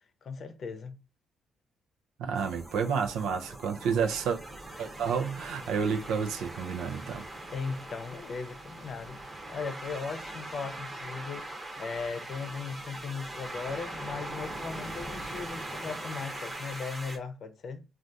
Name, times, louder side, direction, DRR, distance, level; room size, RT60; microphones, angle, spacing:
voice 1, 0.2-1.0 7.5-11.5 11.8-17.8, left 5 dB, 55° left, 0.6 m, -38 dB
voice 2, 2.2-4.4 4.8-7.2, right 6 dB, 85° right, 0.5 m, -30 dB
sound 1, 2.4-17.2, right 1 dB, 20° right, 0.9 m, -41 dB
3.3 x 2.4 x 2.6 m
cardioid pair, 90°, 0 cm